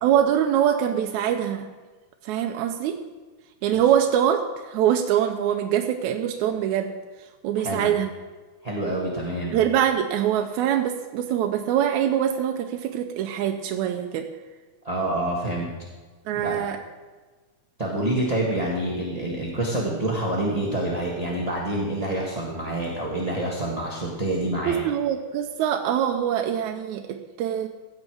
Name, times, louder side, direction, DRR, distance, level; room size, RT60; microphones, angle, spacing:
voice 1, 0.0-1.7 2.2-3.0 3.6-6.9 7.4-8.1 9.5-14.3 16.3-16.8 24.7-27.7, right 10 dB, 85° right, 4 dB, 2.0 m, -24 dB
voice 2, 8.6-9.6 14.8-15.7 16.4-16.6 17.8-24.8, right 1 dB, 25° right, -3 dB, 0.9 m, -27 dB
16.0 x 8.2 x 4.7 m, 1.3 s
omnidirectional pair, 3.3 m